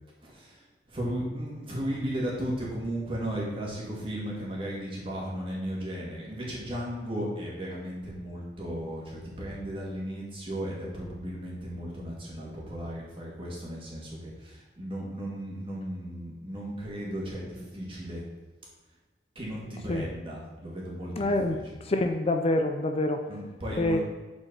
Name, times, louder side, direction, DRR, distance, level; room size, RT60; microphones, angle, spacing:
voice 1, 0.2-18.2 19.4-21.6 23.3-24.0, equal, 30° right, -5 dB, 2.4 m, -35 dB
voice 2, 21.2-21.6 21.9-23.2 23.8-24.0, left 2 dB, 35° left, 5 dB, 0.5 m, -26 dB
7.3 x 4.9 x 5.6 m, 1.2 s
head